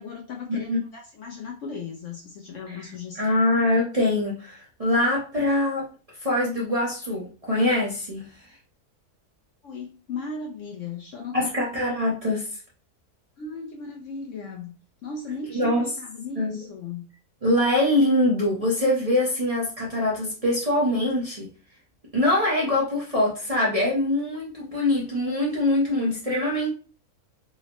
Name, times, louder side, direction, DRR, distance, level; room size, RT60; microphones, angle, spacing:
voice 1, 0.0-3.4 9.6-11.5 13.4-14.7 15.0-17.0, left 4 dB, 70° left, 1 dB, 0.8 m, -36 dB
voice 2, 3.1-5.9 6.2-8.3 11.3-12.6 15.5-15.8 16.4-16.6 17.4-21.5 22.1-26.7, left 1 dB, 30° right, -6 dB, 0.7 m, -23 dB
3.7 x 2.0 x 3.0 m, 0.37 s
omnidirectional pair, 1.6 m